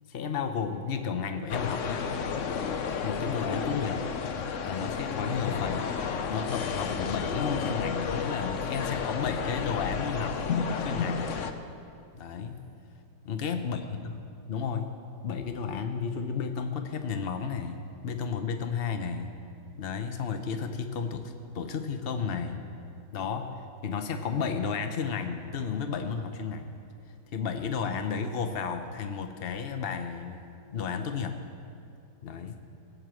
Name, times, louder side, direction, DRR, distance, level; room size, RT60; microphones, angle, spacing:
voice 1, 0.1-2.1 3.0-4.0 4.6-5.9 6.3-10.4 10.8-11.3 12.1-12.6 13.2-14.1 14.5-14.9 15.2-19.3 19.8-22.6 23.1-26.8 27.3-30.4 30.7-31.4 32.2-32.6, left 6 dB, 85° left, 7 dB, 0.5 m, -32 dB
sound 1, 1.5-11.5, left 6 dB, 60° left, 0.8 m, -32 dB
17.5 x 7.7 x 7.6 m, 2.5 s
omnidirectional pair, 2.1 m